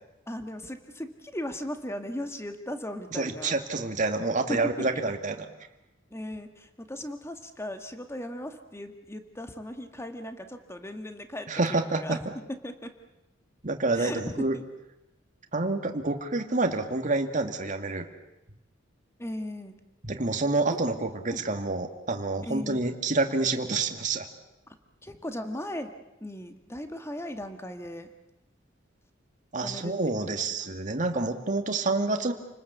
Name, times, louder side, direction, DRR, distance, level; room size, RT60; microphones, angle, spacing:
voice 1, 0.3-3.6 4.5-5.0 6.1-12.2 12.5-12.9 13.9-14.6 19.2-19.8 21.3-21.4 22.4-22.9 24.7-24.8 25.0-25.9 26.2-28.1 29.6-30.8, left 1 dB, 15° left, 7 dB, 2.0 m, -37 dB
voice 2, 3.1-5.4 11.5-12.0 13.6-14.1 14.4-14.6 15.5-18.1 20.0-24.3 29.5-32.3, right 3 dB, 40° right, 5 dB, 2.3 m, -28 dB
29.5 x 20.0 x 8.3 m, 0.94 s
head